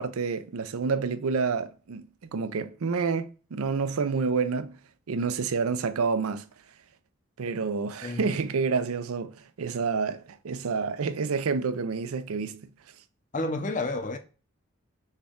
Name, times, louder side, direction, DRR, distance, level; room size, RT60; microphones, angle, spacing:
voice 1, 0.0-2.0 2.3-4.8 5.1-6.5 7.4-12.7 13.4-13.7, right 5 dB, 85° right, 0.5 m, -29 dB
voice 2, 13.3-14.2, left 2 dB, 35° left, 0.5 m, -30 dB
6.4 x 2.3 x 3.6 m
head